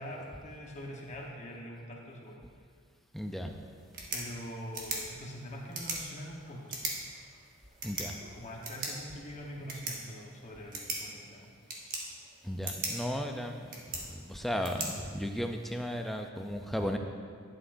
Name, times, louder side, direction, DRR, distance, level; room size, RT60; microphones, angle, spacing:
voice 1, 0.0-2.4 4.1-6.8 8.3-11.5, equal, 30° left, -2 dB, 1.1 m, -44 dB
voice 2, 3.1-3.6 7.8-8.2 12.4-17.0, equal, ahead, 3 dB, 0.4 m, -35 dB
sound 1, 3.8-15.8, right 3 dB, 40° right, 1.2 m, -41 dB
11.5 x 7.4 x 2.6 m, 2.2 s
head